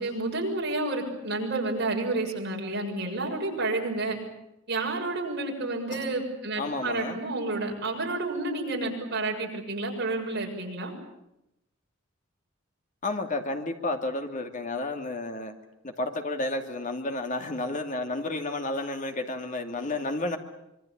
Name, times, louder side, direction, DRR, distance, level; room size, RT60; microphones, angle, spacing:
voice 1, 0.0-4.2 4.7-10.9, right 2 dB, 55° right, 0 dB, 7.0 m, -30 dB
voice 2, 6.6-7.2 13.0-15.5 15.8-20.4, left 2 dB, 40° left, 5 dB, 2.6 m, -31 dB
25.5 x 23.5 x 8.8 m, 0.86 s
head